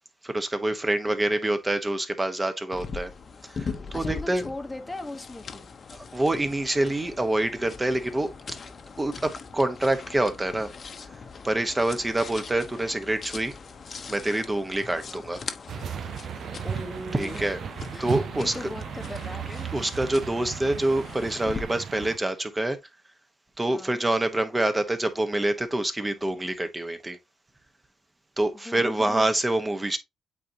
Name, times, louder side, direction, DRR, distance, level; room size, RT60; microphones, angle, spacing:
voice 1, 0.2-3.1 3.4-4.4 5.9-8.6 9.0-10.7 11.4-13.5 14.1-15.4 17.1-17.6 18.0-18.5 19.7-22.8 23.6-27.2 28.4-30.0, right 1 dB, 15° right, 1.2 m, -26 dB
sound 1, 2.7-21.6, left 5 dB, 45° left, 0.9 m, -41 dB
voice 2, 3.9-5.7 14.9-15.2 16.6-17.4 17.9-19.7 23.7-24.0 28.5-29.3, left 1 dB, 10° left, 1.1 m, -38 dB
sound 2, 15.7-22.2, right 8 dB, 60° right, 0.4 m, -35 dB
8.4 x 3.9 x 2.9 m
cardioid pair, 90°, 0 cm